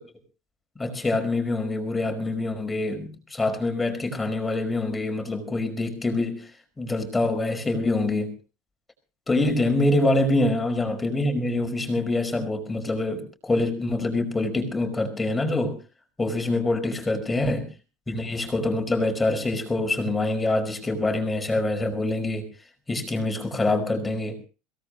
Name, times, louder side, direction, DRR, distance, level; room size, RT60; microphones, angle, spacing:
voice 1, 0.7-6.5 6.8-8.3 9.3-15.8 16.2-17.7 18.1-22.5 22.9-24.4, left 2 dB, 15° left, 6 dB, 5.2 m, -25 dB
22.5 x 18.0 x 3.0 m, 0.34 s
supercardioid pair, 110°, 0 cm